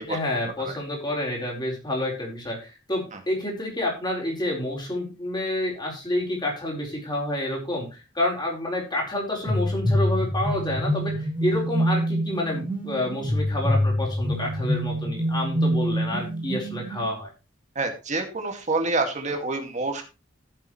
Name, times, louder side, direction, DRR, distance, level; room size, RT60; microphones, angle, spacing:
voice 1, 0.0-17.3, left 1 dB, 25° left, -2 dB, 4.5 m, -29 dB
sound 1, 9.4-17.1, equal, 5° right, 3.6 m, -26 dB
voice 2, 17.8-20.0, right 3 dB, 40° right, 5 dB, 2.2 m, -27 dB
15.0 x 7.3 x 3.2 m, 0.30 s
head